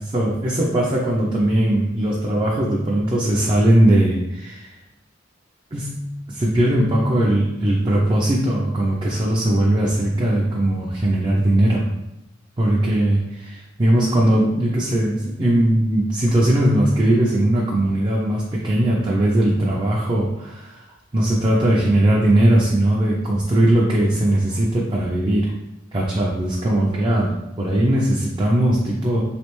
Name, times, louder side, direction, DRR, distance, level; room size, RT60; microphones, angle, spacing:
voice 1, 0.1-4.8 5.7-11.9 12.6-20.8 21.1-25.5 25.9-29.2, right 1 dB, 25° right, -4 dB, 0.4 m, -19 dB
3.2 x 3.2 x 3.0 m, 0.88 s
head